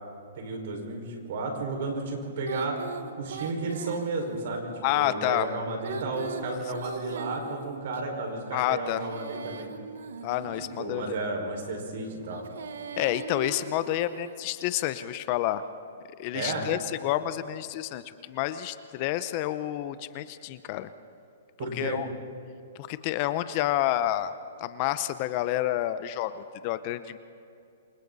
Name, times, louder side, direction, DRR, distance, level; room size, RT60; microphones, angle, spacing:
voice 1, 0.4-2.8 3.2-9.7 10.8-12.5 16.3-16.7 21.6-22.0, right 3 dB, 60° right, 2 dB, 5.2 m, -33 dB
Female singing, 2.4-4.6 5.7-8.0 8.8-11.0 12.2-14.5, right 6 dB, 80° right, 1.5 m, -40 dB
voice 2, 4.8-5.5 8.5-9.1 10.2-11.3 12.9-15.6 16.2-20.9 21.7-22.1 22.7-24.3 24.6-27.2, left 14 dB, 35° left, 13 dB, 0.7 m, -29 dB
28.0 x 25.0 x 4.1 m, 2.5 s
hypercardioid pair, 155°, 0 cm